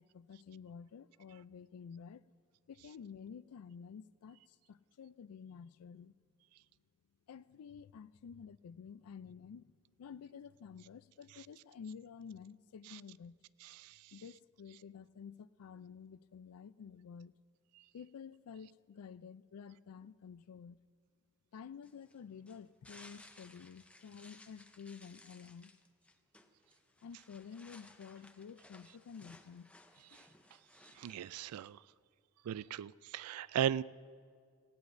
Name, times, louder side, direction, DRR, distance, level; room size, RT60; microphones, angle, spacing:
voice 1, 0.0-2.2 2.7-6.2 7.3-13.4 14.1-17.3 17.9-20.8 21.5-25.7 27.0-29.7 30.1-30.3, left 6 dB, 80° left, 0.4 m, -51 dB
sound 1, 21.8-31.7, left 2 dB, 5° left, 0.5 m, -60 dB
voice 2, 31.0-31.8 32.5-33.8, right 10 dB, 80° right, 0.3 m, -36 dB
19.0 x 16.5 x 2.6 m
head